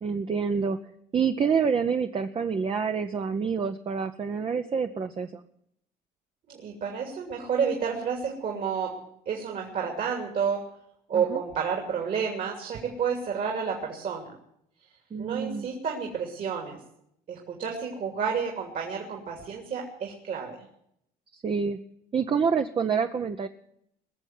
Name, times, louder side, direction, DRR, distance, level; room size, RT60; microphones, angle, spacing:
voice 1, 0.0-0.8 1.1-5.4 11.1-11.4 15.1-15.7 21.3-21.8 22.1-23.5, right 6 dB, 30° right, 6 dB, 0.8 m, -27 dB
voice 2, 6.5-9.0 9.3-10.6 11.1-14.4 15.2-16.8 17.3-20.5, right 6 dB, 55° right, 0 dB, 2.9 m, -30 dB
21.0 x 7.1 x 9.4 m, 0.74 s
cardioid pair, 110°, 17 cm